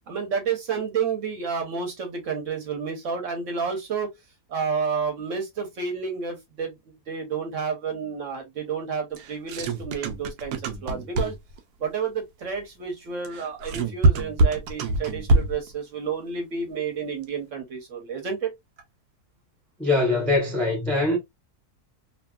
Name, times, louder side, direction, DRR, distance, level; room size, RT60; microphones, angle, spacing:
voice 1, 0.1-4.1 4.5-6.8 7.1-11.3 11.8-18.5, right 6 dB, 60° right, 1.0 m, -30 dB
sound 1, 9.2-11.6 13.3-15.7, right 2 dB, 90° right, 1.1 m, -23 dB
voice 2, 19.8-21.2, left 2 dB, ahead, 0.4 m, -22 dB
2.7 x 2.6 x 2.2 m
omnidirectional pair, 1.7 m